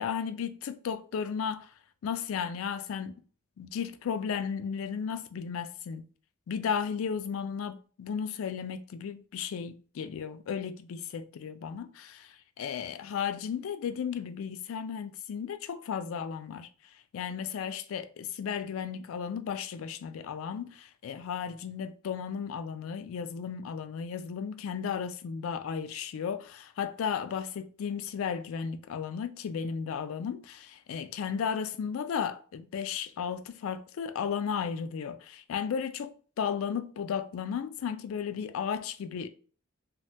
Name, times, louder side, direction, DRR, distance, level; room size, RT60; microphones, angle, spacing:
voice 1, 0.0-1.7 2.0-3.1 3.6-6.1 6.5-16.7 17.1-39.3, left 7 dB, 70° left, 0.3 m, -34 dB
2.8 x 2.2 x 3.2 m
head